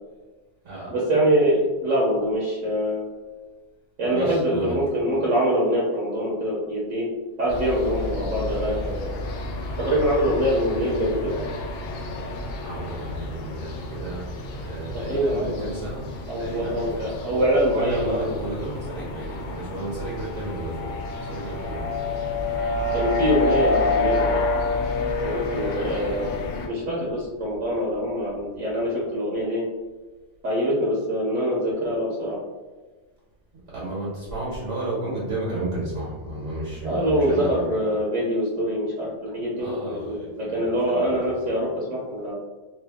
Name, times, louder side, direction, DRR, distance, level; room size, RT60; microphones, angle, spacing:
voice 1, 0.9-3.0 4.0-7.1 7.4-9.2 9.8-11.4 14.9-15.8 16.3-18.3 22.9-24.6 25.2-26.4 26.7-29.6 30.4-32.4 36.8-42.3, equal, 85° right, -6 dB, 1.3 m, -24 dB
voice 2, 4.1-4.7 10.3-10.4 12.6-14.2 14.6-16.1 16.3-17.1 17.7-22.1 33.7-37.6 39.6-41.3, right 2 dB, 70° right, -8 dB, 1.5 m, -33 dB
sound 1, 7.5-26.7, left 2 dB, 80° left, 0.9 m, -29 dB
3.2 x 2.7 x 3.5 m, 1.2 s
omnidirectional pair, 1.2 m